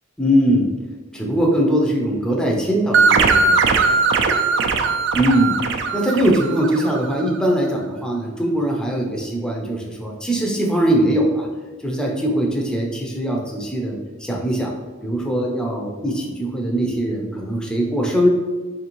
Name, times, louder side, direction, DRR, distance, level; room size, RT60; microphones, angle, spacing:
voice 1, 0.2-0.7 1.1-3.7 5.1-5.5 5.9-11.5 11.8-14.7 15.0-18.3, right 1 dB, 5° left, -2 dB, 0.4 m, -21 dB
sound 1, 2.9-7.3, right 4 dB, 60° right, 0.3 m, -19 dB
4.4 x 2.6 x 2.9 m, 1.3 s
head